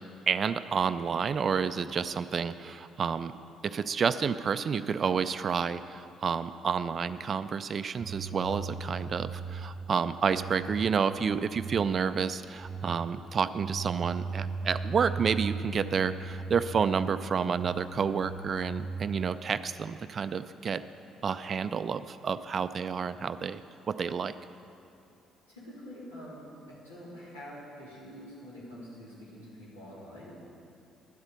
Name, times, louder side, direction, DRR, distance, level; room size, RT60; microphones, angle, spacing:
voice 1, 0.3-3.3 3.6-20.8 21.2-23.6 23.9-24.3, right 6 dB, 40° right, 12 dB, 0.3 m, -30 dB
sound 1, 8.0-19.1, right 4 dB, 10° right, 1.4 m, -38 dB
voice 2, 25.5-30.3, equal, 85° left, -8 dB, 3.0 m, -46 dB
11.0 x 8.0 x 6.8 m, 2.7 s
figure-of-eight pair, 45°, 0 cm